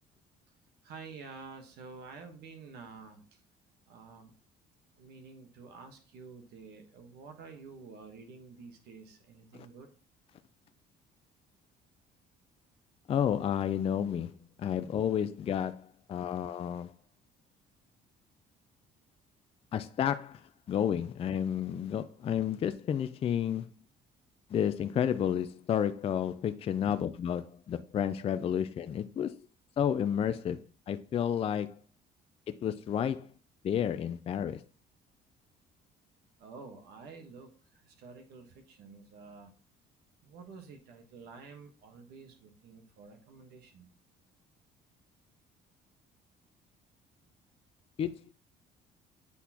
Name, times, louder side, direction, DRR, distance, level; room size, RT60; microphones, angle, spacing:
voice 1, 0.8-3.4 3.9-4.3 5.0-9.9 36.4-39.5 40.2-43.9, right 4 dB, 75° right, 1.2 m, -50 dB
voice 2, 13.1-14.3 14.6-15.8 16.1-16.9 19.7-20.4 20.7-23.7 24.5-29.3 29.8-31.7 32.6-33.3 33.6-34.6 48.0-48.3, left 9 dB, 35° left, 0.4 m, -31 dB
8.3 x 4.0 x 2.9 m
cardioid pair, 110°, 17 cm